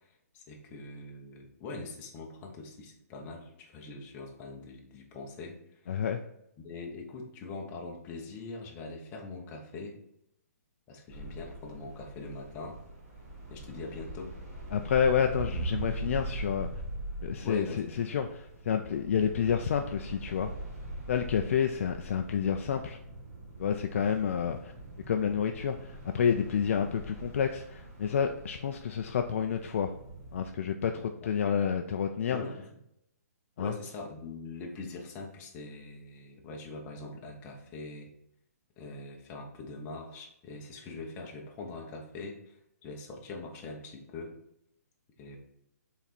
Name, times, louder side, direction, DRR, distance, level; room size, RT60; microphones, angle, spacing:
voice 1, 0.3-5.8 6.6-10.0 10.9-12.8 13.5-14.3 17.4-18.2 31.0-31.3 32.3-32.7 33.6-38.1 38.8-44.3 45.2-45.4, left 3 dB, 20° left, 1 dB, 1.0 m, -43 dB
voice 2, 5.9-6.2 14.7-16.7 17.2-18.3 18.7-20.5 21.1-23.0 23.6-24.7 25.1-29.9 30.3-32.4 33.6-33.7, left 7 dB, 50° left, 5 dB, 0.5 m, -29 dB
sound 1, 11.1-30.5, right 2 dB, 25° right, 2.4 m, -42 dB
5.8 x 4.1 x 4.2 m, 0.79 s
hypercardioid pair, 165°, 9 cm